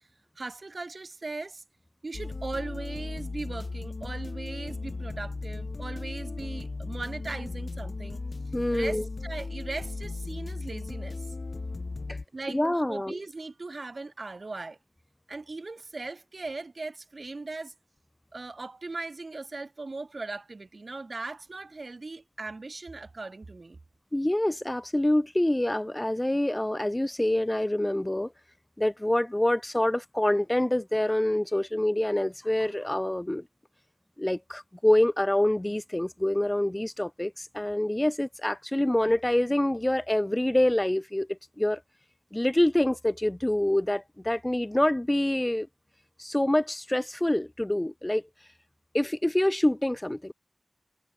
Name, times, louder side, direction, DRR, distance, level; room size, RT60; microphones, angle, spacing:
voice 1, 0.4-1.6 2.0-8.2 8.7-11.3 12.3-12.6 12.9-14.8 15.3-17.7 18.3-23.8, right 3 dB, 65° right, 2.9 m, -38 dB
sound 1, 2.1-12.2, left 3 dB, 65° left, 0.9 m, -36 dB
voice 2, 8.5-9.0 12.1-12.2 12.5-13.2 24.1-28.3 28.8-33.4 34.2-41.8 42.3-45.7 46.2-48.2 48.9-50.3, left 1 dB, 20° left, 0.3 m, -26 dB
wide cardioid pair, 55°, 0 cm